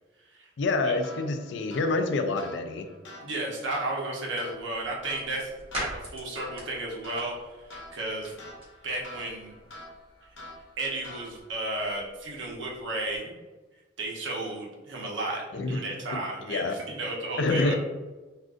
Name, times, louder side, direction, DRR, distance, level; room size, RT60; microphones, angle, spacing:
voice 1, 0.6-2.9 15.5-15.8 16.1-16.8 17.4-17.7, left 3 dB, 70° left, 7 dB, 0.4 m, -27 dB
sound 1, 1.0-11.7, left 1 dB, 90° left, 0.8 m, -47 dB
voice 2, 3.2-5.5 5.8-7.4 7.6-8.3 8.8-9.5 10.8-13.3 14.0-17.8, right 2 dB, 90° right, -2 dB, 0.8 m, -33 dB
sound 2, 4.5-13.2, equal, 30° right, 1.1 m, -44 dB
2.5 x 2.5 x 3.5 m, 1.2 s
head